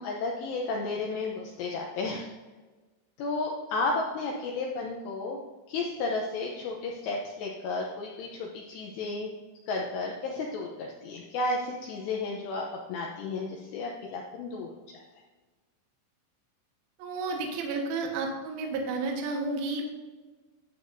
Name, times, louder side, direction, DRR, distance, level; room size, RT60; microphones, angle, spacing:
voice 1, 0.0-2.3 3.2-5.4 5.7-9.3 9.7-14.7 14.9-15.0, left 3 dB, 80° left, 0 dB, 2.5 m, -33 dB
voice 2, 17.0-19.8, right 3 dB, 65° right, 0 dB, 2.5 m, -31 dB
11.5 x 7.9 x 2.7 m, 1.3 s
omnidirectional pair, 5.9 m